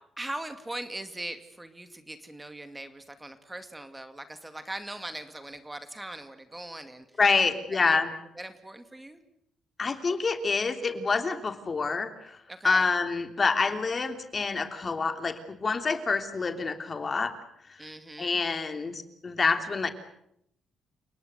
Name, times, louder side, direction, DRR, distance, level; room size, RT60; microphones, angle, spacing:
voice 1, 0.2-7.1 7.4-8.0 8.4-9.2 12.5-12.9 17.8-18.4, right 1 dB, 10° right, 9 dB, 2.3 m, -40 dB
voice 2, 7.2-8.1 9.8-17.3 17.7-17.9 18.2-19.9, left 4 dB, 35° left, 8 dB, 3.2 m, -27 dB
30.0 x 18.5 x 8.1 m, 0.74 s
cardioid pair, 90°, 0 cm